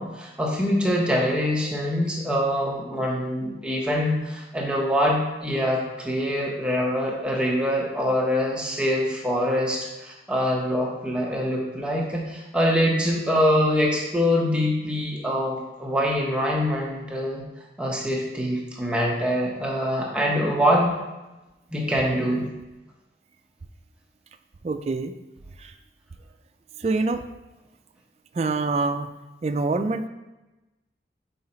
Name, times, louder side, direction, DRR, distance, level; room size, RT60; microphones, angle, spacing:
voice 1, 0.0-17.4 17.8-20.9 21.7-22.5, equal, 5° right, -2 dB, 0.9 m, -24 dB
voice 2, 24.6-25.1 25.6-25.7 26.8-27.2 28.4-29.1 29.4-30.1, right 3 dB, 35° right, 8 dB, 0.3 m, -25 dB
5.5 x 4.7 x 4.2 m, 1.1 s
head